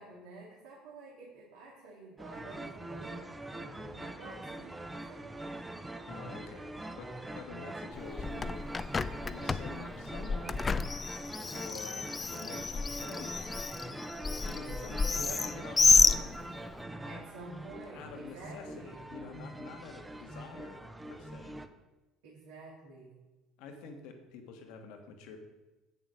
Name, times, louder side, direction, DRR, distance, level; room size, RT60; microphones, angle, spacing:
voice 1, 0.0-5.5 15.1-15.5 17.1-19.0 22.2-23.2, right 2 dB, 70° right, -6 dB, 2.3 m, -50 dB
sound 1, 2.2-21.7, right 1 dB, 10° right, 0.8 m, -43 dB
voice 2, 6.1-6.7 7.0-8.6 9.3-10.7 11.5-13.6 14.5-16.4 17.9-20.8 21.1-21.6 23.6-25.4, left 5 dB, 60° left, 5 dB, 1.3 m, -48 dB
Bird, 7.9-16.8, left 4 dB, 25° left, 0.4 m, -30 dB
8.5 x 7.0 x 4.9 m, 1.1 s
figure-of-eight pair, 60°, 0 cm